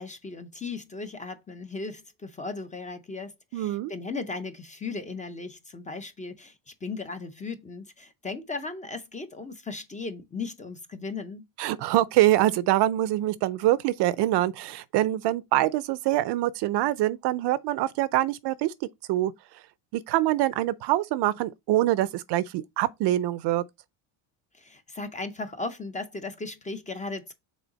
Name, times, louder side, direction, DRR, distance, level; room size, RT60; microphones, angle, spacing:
voice 1, 0.0-11.4 24.5-27.3, left 3 dB, 15° left, 0.5 m, -37 dB
voice 2, 3.5-3.9 11.6-18.7 19.1-19.3 19.9-23.6, right 15 dB, 55° right, 0.5 m, -24 dB
6.2 x 3.9 x 3.9 m
cardioid pair, 155°, 48 cm